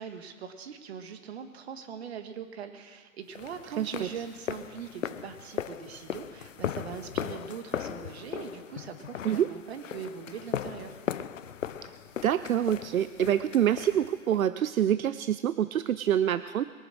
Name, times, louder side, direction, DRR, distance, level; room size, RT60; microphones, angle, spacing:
voice 1, 0.0-11.0, right 7 dB, 50° right, 8 dB, 1.7 m, -41 dB
sound 1, 3.3-14.5, left 9 dB, 65° left, 0.9 m, -38 dB
voice 2, 3.8-4.1 9.2-9.5 11.8-11.9 12.2-16.6, right 10 dB, 75° right, 13 dB, 0.7 m, -26 dB
22.0 x 9.1 x 6.3 m, 1.5 s
hypercardioid pair, 155°, 42 cm